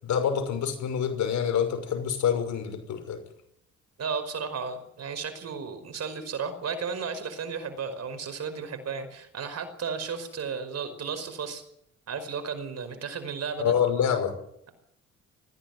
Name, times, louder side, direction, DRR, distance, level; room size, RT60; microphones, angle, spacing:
voice 1, 0.0-3.2 13.6-14.4, left 8 dB, 70° left, 7 dB, 6.0 m, -26 dB
voice 2, 4.0-11.6 12.1-13.7, right 5 dB, 55° right, 9 dB, 5.3 m, -34 dB
20.0 x 15.5 x 9.4 m, 0.74 s
cardioid pair, 90°, 30 cm